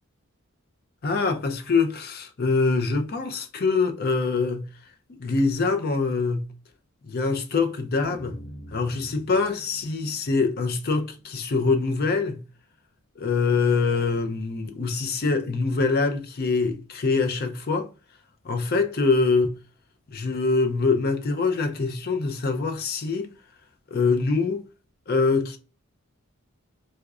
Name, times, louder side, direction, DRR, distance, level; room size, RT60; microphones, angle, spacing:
voice 1, 1.0-4.7 5.2-6.5 7.0-8.4 8.7-12.4 13.2-17.9 18.4-19.6 20.1-23.3 23.9-24.7 25.1-25.6, left 4 dB, 45° left, 0.5 m, -24 dB
sound 1, 8.1-12.5, equal, 85° left, 1.0 m, -46 dB
4.7 x 2.1 x 2.3 m
head